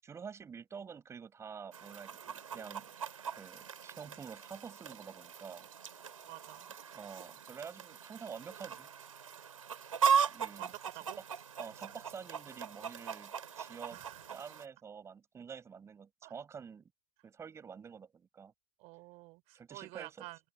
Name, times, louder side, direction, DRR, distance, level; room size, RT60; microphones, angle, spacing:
voice 1, 0.0-2.9 3.3-5.7 6.9-8.9 10.3-10.7 11.6-14.0 14.3-16.9 17.2-18.5 19.5-20.3, right 6 dB, 15° right, 6.6 m, -48 dB
Chicken rooster, 1.7-14.7, right 7 dB, 85° right, 4.5 m, -38 dB
voice 2, 6.3-6.7 10.6-11.2 13.9-14.2 16.2-16.3 18.8-20.4, right 23 dB, 40° right, 5.4 m, -49 dB
open air
hypercardioid pair, 125°, 17 cm